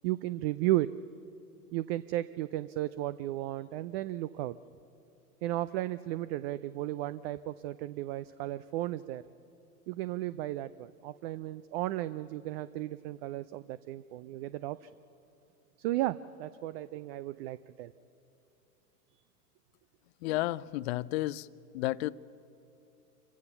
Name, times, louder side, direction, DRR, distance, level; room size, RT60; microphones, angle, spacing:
voice 1, 0.0-0.9 1.7-4.6 5.4-9.2 9.9-14.9 15.8-17.9 19.1-19.2, right 15 dB, 40° right, 15 dB, 0.5 m, -34 dB
voice 2, 20.2-21.5 21.7-22.1, left 17 dB, 45° left, 21 dB, 0.5 m, -31 dB
26.5 x 15.5 x 7.1 m, 2.7 s
hypercardioid pair, 100°, 47 cm